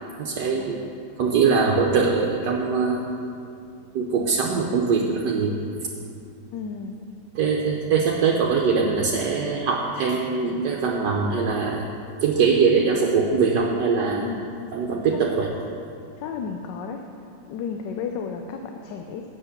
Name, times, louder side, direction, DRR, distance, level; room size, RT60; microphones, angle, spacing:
voice 1, 0.2-0.8 1.2-3.0 3.9-5.6 7.3-11.9 12.2-14.3 14.7-15.5, right 5 dB, 75° right, -1 dB, 1.4 m, -22 dB
voice 2, 6.5-7.0 14.2-14.4 15.1-15.4 16.2-19.2, left 6 dB, 90° left, 4 dB, 1.3 m, -33 dB
8.2 x 7.9 x 6.6 m, 2.5 s
omnidirectional pair, 1.9 m